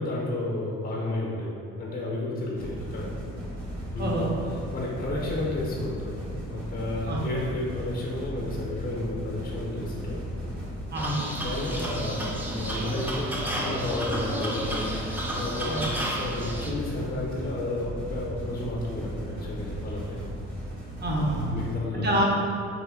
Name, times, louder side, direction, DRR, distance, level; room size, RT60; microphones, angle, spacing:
voice 1, 0.0-1.5 1.8-3.1 3.9-4.2 4.5-6.2 6.5-10.2 11.2-20.2 21.5-22.2, left 1 dB, 30° left, -4 dB, 0.7 m, -32 dB
sound 1, 2.5-21.7, equal, 85° right, 1.4 m, -36 dB
voice 2, 4.0-4.6 7.1-7.3 10.9-11.2 15.7-15.8 21.0-21.6 21.9-22.2, right 1 dB, 35° right, -3 dB, 0.7 m, -27 dB
sound 2, 11.0-16.7, right 1 dB, 5° right, 0.4 m, -32 dB
3.1 x 2.8 x 3.5 m, 2.6 s
cardioid pair, 90°, 30 cm